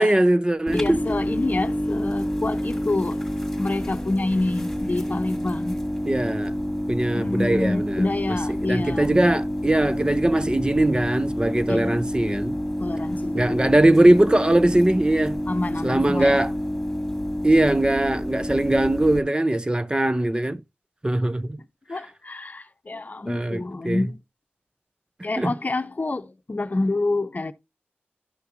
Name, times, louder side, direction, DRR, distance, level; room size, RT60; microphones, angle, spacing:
voice 1, 0.0-1.0 6.1-6.5 6.9-8.0 8.7-12.6 13.3-15.4 15.8-16.5 17.4-20.6 21.0-21.6 23.3-24.0 25.4-25.5, right 1 dB, 20° right, 0.5 m, -21 dB
voice 2, 0.7-3.2 3.6-5.8 7.1-9.2 11.7-12.0 12.8-13.9 15.5-16.5 21.9-24.2 25.2-27.5, left 2 dB, 45° left, 0.7 m, -27 dB
Generator Power Loud Outdoor, 0.7-19.2, equal, ahead, 2.5 m, -28 dB
12.5 x 5.8 x 2.5 m
wide cardioid pair, 55°, 4 cm